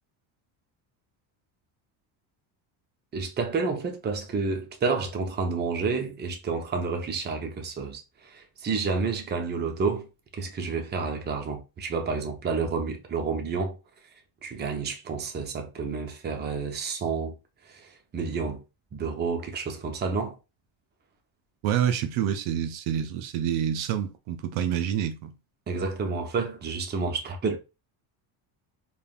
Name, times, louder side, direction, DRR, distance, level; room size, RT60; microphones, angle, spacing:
voice 1, 3.1-10.1 10.3-13.8 14.4-17.4 17.7-18.6 18.9-20.4 25.7-27.6, right 4 dB, 20° right, 0.5 m, -30 dB
voice 2, 21.6-25.3, right 9 dB, 70° right, 0.6 m, -27 dB
3.3 x 2.1 x 2.3 m
supercardioid pair, 95°, 49 cm